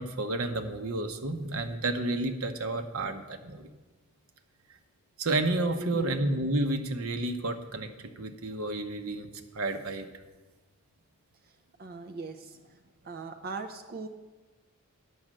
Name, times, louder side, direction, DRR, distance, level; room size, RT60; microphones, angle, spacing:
voice 1, 0.0-3.7 5.2-7.9 8.2-9.3 9.5-10.1, right 2 dB, 80° right, 8 dB, 0.9 m, -30 dB
voice 2, 5.8-6.2 11.8-12.8 13.0-14.1, right 3 dB, 45° right, 5 dB, 0.5 m, -39 dB
9.5 x 6.3 x 7.5 m, 1.2 s
head